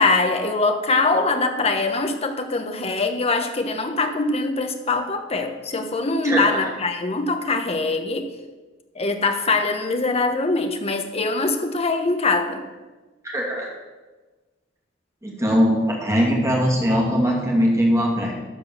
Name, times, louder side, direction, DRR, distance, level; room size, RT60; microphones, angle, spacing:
voice 1, 0.0-8.3 9.0-12.6, left 3 dB, 30° left, 6 dB, 1.0 m, -23 dB
voice 2, 6.2-6.7 13.2-13.7 15.2-18.3, equal, 15° right, -2 dB, 2.3 m, -21 dB
12.5 x 4.5 x 6.8 m, 1.2 s
head